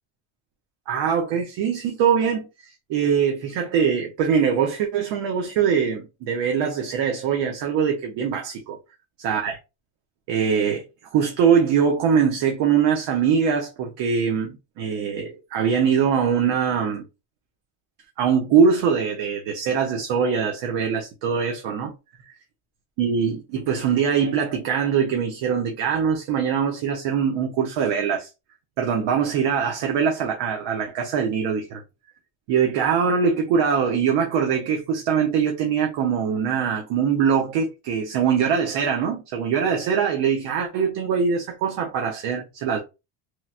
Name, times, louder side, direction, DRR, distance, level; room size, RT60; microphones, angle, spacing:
voice 1, 0.9-8.8 9.2-9.6 10.3-17.0 18.2-21.9 22.3-22.4 23.0-28.3 28.8-31.8 32.5-42.8, right 7 dB, 60° right, 0.8 m, -22 dB
3.1 x 2.9 x 2.4 m
cardioid pair, 155°, 49 cm